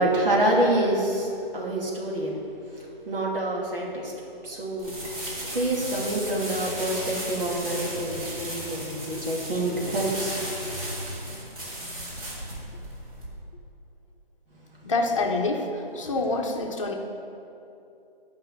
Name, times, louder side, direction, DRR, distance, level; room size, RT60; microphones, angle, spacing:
voice 1, 0.0-2.4 3.1-4.1 4.4-4.9 5.4-10.4, right 1 dB, 65° right, -3 dB, 2.6 m, -26 dB
sound 1, 4.8-13.3, right 1 dB, 35° right, 2.2 m, -35 dB
voice 2, 14.8-17.0, left 3 dB, 30° left, 1 dB, 0.9 m, -27 dB
8.8 x 5.6 x 7.7 m, 2.7 s
hypercardioid pair, 170°, 30 cm